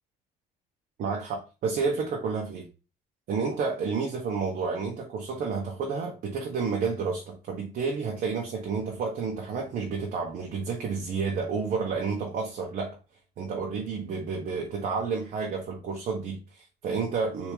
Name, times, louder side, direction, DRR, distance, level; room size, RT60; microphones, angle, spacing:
voice 1, 1.0-2.6 3.3-13.0 13.4-17.5, right 5 dB, 60° right, 0 dB, 0.9 m, -30 dB
3.5 x 2.7 x 3.1 m, 0.31 s
cardioid pair, 110°, 17 cm